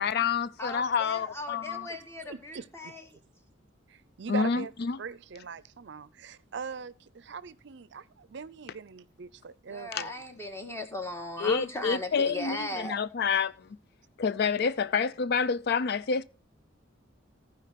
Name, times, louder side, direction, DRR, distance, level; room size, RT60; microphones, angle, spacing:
voice 1, 0.0-1.9 4.3-5.0 9.9-10.0 11.4-13.5 14.2-16.2, left 6 dB, 55° left, 0.4 m, -28 dB
voice 2, 0.6-3.2 9.7-13.0, left 1 dB, 15° left, 1.8 m, -37 dB
voice 3, 2.2-2.9 3.9-4.7 5.0-10.1, right 5 dB, 60° right, 0.5 m, -41 dB
15.0 x 5.1 x 5.8 m
head